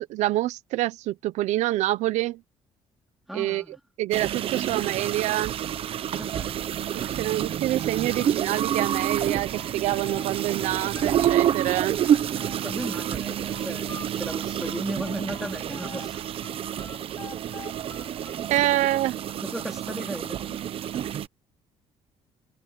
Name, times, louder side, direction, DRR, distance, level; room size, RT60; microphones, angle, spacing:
voice 1, 0.0-2.4 3.3-3.6 4.0-5.6 7.2-12.0 18.5-19.2, right 15 dB, 85° right, 0.8 m, -26 dB
voice 2, 3.3-3.8 6.2-6.8 12.6-16.3 17.5-17.7 19.4-20.6, equal, ahead, 3.6 m, -36 dB
sound 1, 4.1-21.3, right 10 dB, 55° right, 1.0 m, -28 dB
sound 2, 7.7-10.3 10.6-13.1 13.5-16.1 16.4-19.1, left 4 dB, 30° left, 4.0 m, -45 dB
cardioid pair, 125°, 12 cm